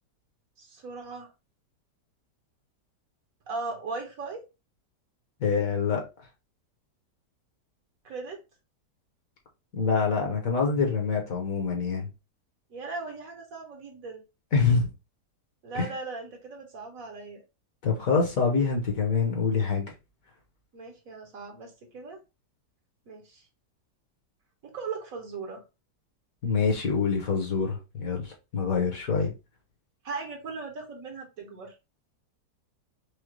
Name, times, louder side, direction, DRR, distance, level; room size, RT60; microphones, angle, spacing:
voice 1, 0.6-1.3 3.5-4.5 8.0-8.4 12.7-14.2 15.6-17.4 20.7-22.2 23.1-23.4 24.6-25.6 30.0-31.8, right 4 dB, 60° right, 1.2 m, -38 dB
voice 2, 5.4-6.0 9.7-12.1 14.5-14.9 15.7-15.9 17.8-19.9 26.4-28.3 28.5-29.3, left 5 dB, 55° left, 1.4 m, -25 dB
4.9 x 2.3 x 3.0 m
omnidirectional pair, 1.8 m